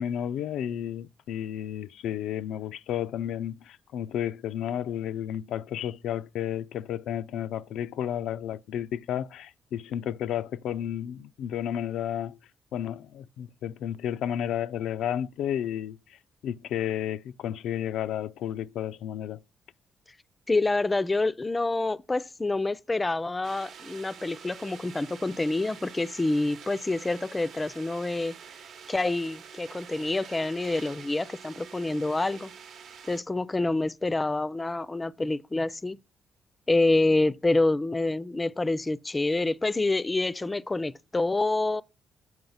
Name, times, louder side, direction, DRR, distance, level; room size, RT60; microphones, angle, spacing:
voice 1, 0.0-12.4 12.7-19.4, left 10 dB, 90° left, 0.3 m, -32 dB
voice 2, 20.5-28.4 28.9-32.5 33.1-36.0 36.7-41.8, left 2 dB, 20° left, 0.4 m, -27 dB
sound 1, 23.4-33.2, right 7 dB, 70° right, 0.9 m, -47 dB
7.9 x 4.6 x 5.5 m
cardioid pair, 105°, 0 cm